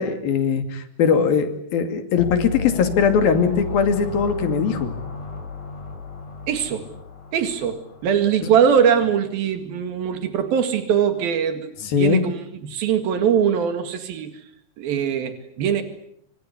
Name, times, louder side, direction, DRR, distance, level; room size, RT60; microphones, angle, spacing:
voice 1, 0.0-4.9 8.4-8.5 11.8-12.2, left 6 dB, 85° left, 8 dB, 4.3 m, -20 dB
sound 1, 2.2-8.6, left 5 dB, 55° left, 4.6 m, -33 dB
voice 2, 6.5-6.9 7.3-11.7 12.0-12.3 12.6-14.3 14.8-15.8, right 8 dB, 90° right, 9 dB, 3.9 m, -21 dB
27.0 x 25.0 x 8.3 m, 0.68 s
omnidirectional pair, 4.1 m